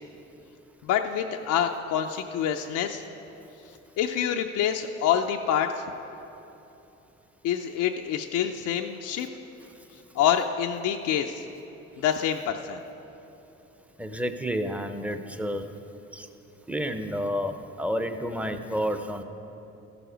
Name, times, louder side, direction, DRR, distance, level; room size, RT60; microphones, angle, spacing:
voice 1, 0.8-3.0 4.0-5.8 7.4-9.3 10.1-11.5 12.0-12.8, left 9 dB, 85° left, 3 dB, 0.5 m, -26 dB
voice 2, 14.0-15.7 16.1-16.3 16.7-19.2, equal, 5° right, 8 dB, 0.7 m, -30 dB
14.0 x 6.9 x 5.1 m, 3.0 s
cardioid pair, 90°, 30 cm